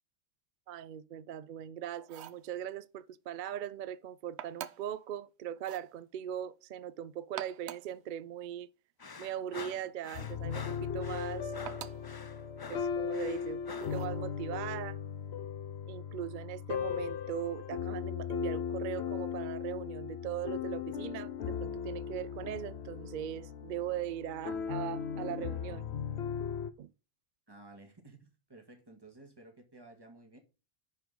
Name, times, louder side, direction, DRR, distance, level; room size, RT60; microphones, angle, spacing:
voice 1, 0.7-8.7 9.2-11.5 12.7-15.0 15.9-25.9 26.8-26.9, right 10 dB, 60° right, 0.6 m, -40 dB
sound 1, 2.0-2.5 4.4-5.0 5.6-5.9 7.2-8.0 10.0-10.4 11.7-12.1 13.8-14.2, right 10 dB, 85° right, 0.9 m, -45 dB
sound 2, 9.0-14.0, left 5 dB, 35° left, 0.4 m, -47 dB
sound 3, 10.1-26.7, left 7 dB, 80° left, 1.0 m, -37 dB
voice 2, 27.5-30.4, right 2 dB, 20° right, 1.8 m, -54 dB
10.5 x 4.8 x 3.8 m
omnidirectional pair, 1.1 m